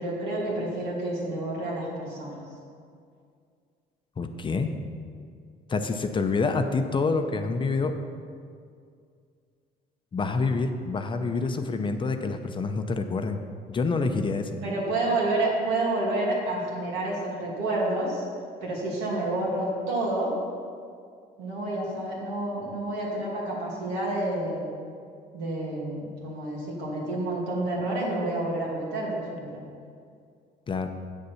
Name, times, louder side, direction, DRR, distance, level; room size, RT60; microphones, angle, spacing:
voice 1, 0.0-2.4 14.6-18.2 18.6-20.3 21.4-24.7 25.3-29.6, right 2 dB, 85° right, -4 dB, 2.6 m, -29 dB
voice 2, 4.2-4.7 5.7-8.0 10.1-13.4 13.7-14.6 30.7-30.9, left 4 dB, 30° left, 7 dB, 0.6 m, -27 dB
8.4 x 6.7 x 5.7 m, 2.3 s
cardioid pair, 110°, 17 cm